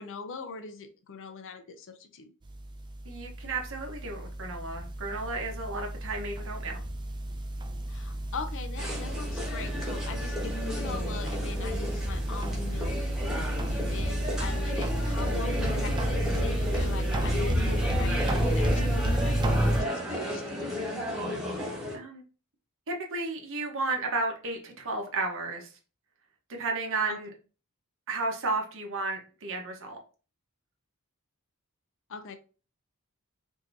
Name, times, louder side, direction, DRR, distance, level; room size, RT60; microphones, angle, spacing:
voice 1, 0.0-2.3 7.9-12.9 13.7-20.9 27.1-27.2 32.1-32.4, left 5 dB, 60° left, 9 dB, 0.6 m, -41 dB
sound 1, 2.4-19.8, right 1 dB, 20° right, 0.5 m, -30 dB
voice 2, 3.0-6.8 21.9-22.2 22.9-25.7 26.5-27.3 28.1-30.0, right 3 dB, 60° right, 2 dB, 1.0 m, -33 dB
sound 2, 8.8-22.0, equal, 5° right, 1.2 m, -34 dB
4.7 x 2.8 x 2.6 m, 0.36 s
head